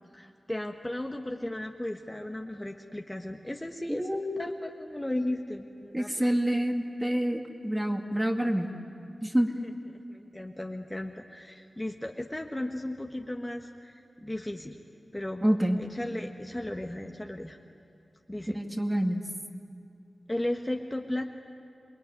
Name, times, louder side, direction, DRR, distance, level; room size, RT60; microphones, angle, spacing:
voice 1, 0.1-4.1 4.4-6.4 7.9-8.1 8.4-8.5 9.4-14.8 15.1-15.4 15.8-17.6 18.3-18.6 20.3-21.2, left 1 dB, 15° left, 2 dB, 1.3 m, -36 dB
voice 2, 4.0-4.4 5.9-8.7 9.2-9.5 15.4-15.8 18.5-19.2, equal, 10° right, 3 dB, 2.0 m, -27 dB
27.5 x 21.5 x 9.6 m, 2.4 s
wide cardioid pair, 85°, 0 cm